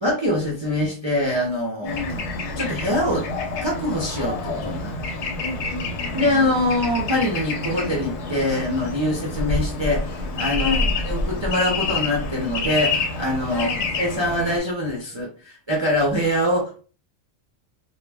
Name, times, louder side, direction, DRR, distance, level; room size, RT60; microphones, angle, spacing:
voice 1, 0.0-2.0 2.6-3.3 3.6-5.2 6.1-10.8 11.0-13.7 14.0-16.8, left 1 dB, 40° right, -3 dB, 0.4 m, -24 dB
voice 2, 1.8-2.3 5.4-6.5 10.6-11.0 13.5-13.9, left 3 dB, 85° left, 4 dB, 1.1 m, -32 dB
Bird / Traffic noise roadway noise, 1.9-14.6, left 3 dB, 65° left, 0.9 m, -28 dB
2.3 x 2.1 x 3.3 m, 0.37 s
omnidirectional pair, 1.3 m